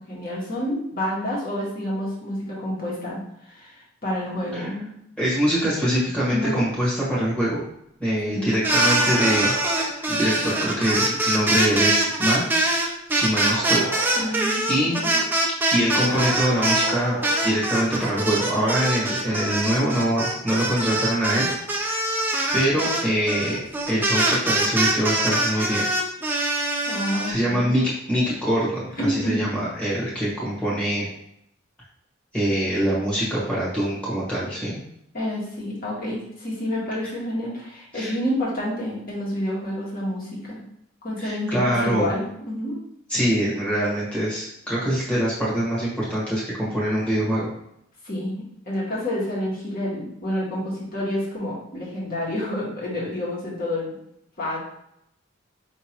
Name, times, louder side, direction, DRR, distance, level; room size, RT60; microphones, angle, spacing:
voice 1, 0.1-4.9 6.3-6.6 8.3-8.5 14.1-15.1 26.9-27.7 29.0-29.4 35.1-40.6 41.0-42.8 48.0-53.9 54.4-54.6, left 1 dB, 45° left, -5 dB, 1.5 m, -29 dB
voice 2, 5.2-7.6 8.0-9.5 10.1-12.4 12.8-13.9 14.2-14.3 14.7-15.0 15.7-17.2 17.4-22.1 22.5-23.6 23.9-25.8 27.3-27.8 28.1-31.1 32.3-34.8 37.9-38.1 41.2-42.1 43.1-47.5, equal, 5° left, -9 dB, 1.3 m, -24 dB
sound 1, 8.5-16.9 17.2-27.3, right 1 dB, 10° right, 0.4 m, -23 dB
Bark, 8.8-9.9 13.4-14.5 16.1-17.6 19.3-19.4 21.3-21.4 22.5-22.6, right 3 dB, 65° right, 0.7 m, -33 dB
5.1 x 2.9 x 2.9 m, 0.77 s
head